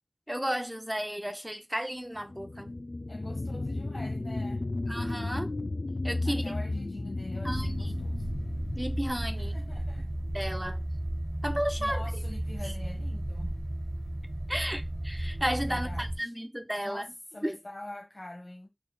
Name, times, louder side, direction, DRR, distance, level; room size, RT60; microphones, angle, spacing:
voice 1, 0.3-2.7 4.9-5.5 6.0-6.6 7.4-8.0 8.7-9.6 10.3-10.8 11.4-12.0 12.6-12.7 14.5-17.0 17.4-17.6, equal, 15° right, 0.5 m, -33 dB
sound 1, 2.1-11.2 11.7-11.8, left 2 dB, 80° left, 0.3 m, -35 dB
voice 2, 3.1-4.6 6.2-8.3 9.3-10.1 11.8-13.5 15.6-16.3 16.8-17.1 17.3-18.7, left 1 dB, 60° left, 1.0 m, -45 dB
sound 2, 7.4-16.2, right 1 dB, 55° right, 1.0 m, -34 dB
4.2 x 3.7 x 2.3 m
wide cardioid pair, 40°, 0 cm